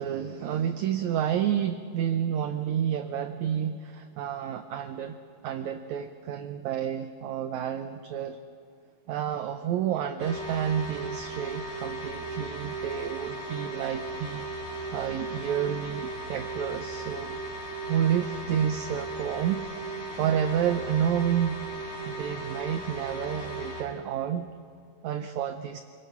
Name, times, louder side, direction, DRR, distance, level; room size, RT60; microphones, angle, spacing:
voice 1, 0.0-5.2 5.4-8.4 9.1-14.5 14.9-17.4 17.9-21.6 22.1-24.5 25.0-25.8, right 9 dB, 75° right, 8 dB, 1.8 m, -30 dB
sound 1, 10.2-23.8, right 2 dB, 20° left, 4.8 m, -37 dB
28.5 x 22.0 x 6.0 m, 2.3 s
omnidirectional pair, 4.1 m